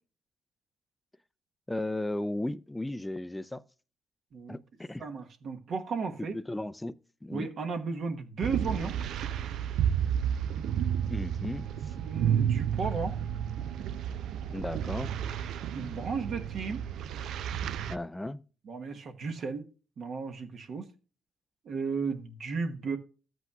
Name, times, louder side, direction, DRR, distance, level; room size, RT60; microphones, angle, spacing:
voice 1, 1.7-3.6 4.5-5.1 6.3-6.9 7.2-7.5 11.1-11.7 14.5-15.1 17.8-18.4, left 1 dB, 10° left, 0.4 m, -35 dB
voice 2, 5.0-6.4 7.3-9.0 12.0-13.2 15.7-16.8 18.6-19.7 20.0-20.9 21.6-23.0, right 4 dB, 55° right, 1.2 m, -34 dB
sound 1, 8.4-18.0, right 9 dB, 75° right, 0.5 m, -31 dB
13.5 x 8.1 x 2.3 m
cardioid pair, 110°, 0 cm